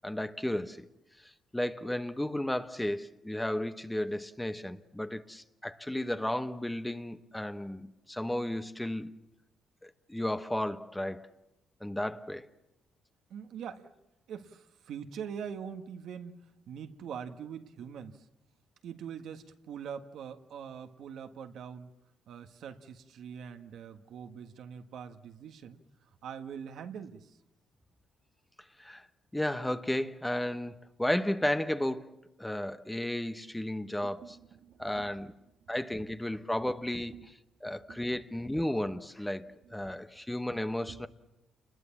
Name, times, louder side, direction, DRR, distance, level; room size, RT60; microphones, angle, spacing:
voice 1, 0.0-0.9 1.2-9.1 9.8-11.3 11.8-12.5 28.8-29.0 29.3-32.1 32.4-34.4 34.8-35.3 35.7-37.1 37.6-41.1, left 1 dB, 5° left, 1.1 m, -33 dB
voice 2, 13.3-13.9 14.3-18.2 18.8-21.9 22.3-27.4 34.0-35.1 36.0-36.2 37.1-37.3 37.6-38.3 39.6-39.7 40.9-41.0, right 7 dB, 75° right, 1.6 m, -44 dB
29.5 x 21.0 x 7.3 m
cardioid pair, 90°, 0 cm